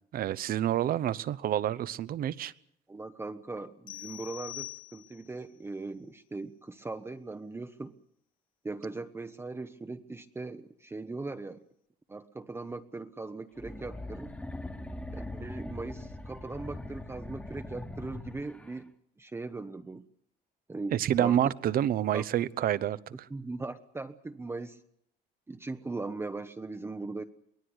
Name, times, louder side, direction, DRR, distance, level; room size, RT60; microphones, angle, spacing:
voice 1, 0.1-2.5 20.9-23.3, right 11 dB, 60° right, 18 dB, 0.9 m, -28 dB
voice 2, 2.9-7.9 8.6-11.6 12.1-14.3 15.1-18.9 19.2-20.0 20.7-21.4 22.1-22.2 23.3-24.8 25.5-27.2, right 3 dB, 15° right, 8 dB, 0.9 m, -39 dB
sound 1, 3.9-5.4, left 17 dB, 55° left, 1.3 m, -43 dB
sound 2, 13.6-18.8, left 1 dB, 5° left, 1.5 m, -41 dB
23.5 x 17.5 x 8.0 m, 0.72 s
cardioid pair, 110°, 17 cm